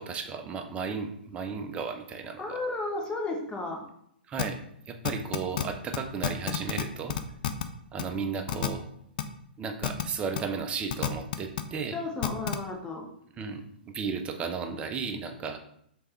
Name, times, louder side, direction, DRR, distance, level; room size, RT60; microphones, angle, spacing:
voice 1, 0.0-2.6 4.3-4.6 4.9-7.2 7.9-8.8 9.6-12.0 13.4-15.6, right 5 dB, 20° right, 5 dB, 0.5 m, -34 dB
voice 2, 2.4-3.8 11.9-13.0, left 2 dB, 15° left, 1 dB, 0.9 m, -33 dB
sound 1, 4.4-4.5 5.0-5.6 5.9-6.0 6.2-6.8 7.1-7.6 8.0-8.1 8.5-8.7 9.2-9.3 9.8-10.0 10.3-10.4 10.9-11.6 12.2-12.6, left 12 dB, 55° left, 0.4 m, -28 dB
3.3 x 3.3 x 4.2 m, 0.70 s
hypercardioid pair, 125°, 6 cm